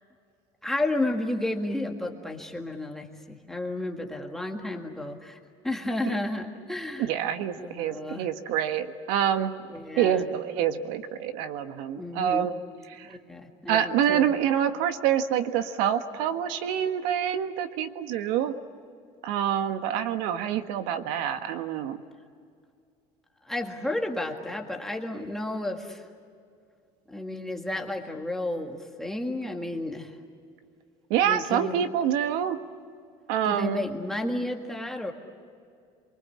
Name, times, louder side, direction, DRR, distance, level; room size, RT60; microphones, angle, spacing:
voice 1, 0.6-5.4 5.6-7.1 7.6-8.3 9.7-10.3 11.9-12.5 13.0-14.3 23.5-26.1 27.1-30.1 31.2-31.8 33.4-35.1, left 1 dB, 5° left, 1 dB, 1.8 m, -32 dB
voice 2, 7.0-9.5 10.0-12.5 12.9-13.2 13.7-18.5 19.2-22.0 31.1-32.6 33.3-33.8, right 9 dB, 80° right, 8 dB, 1.6 m, -26 dB
28.5 x 24.0 x 8.6 m, 2.3 s
cardioid pair, 180°, 14 cm